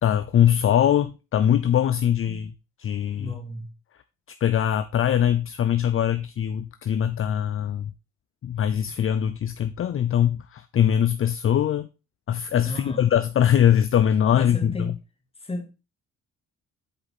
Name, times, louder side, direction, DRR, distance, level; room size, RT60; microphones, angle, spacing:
voice 1, 0.0-2.5 2.8-3.3 4.4-7.9 8.4-11.9 12.3-14.9, left 10 dB, 45° left, 0.6 m, -22 dB
voice 2, 3.2-3.8 12.6-13.1 14.3-15.0 15.4-15.7, left 1 dB, 20° left, 2.1 m, -34 dB
7.7 x 4.8 x 4.2 m
cardioid pair, 90°, 30 cm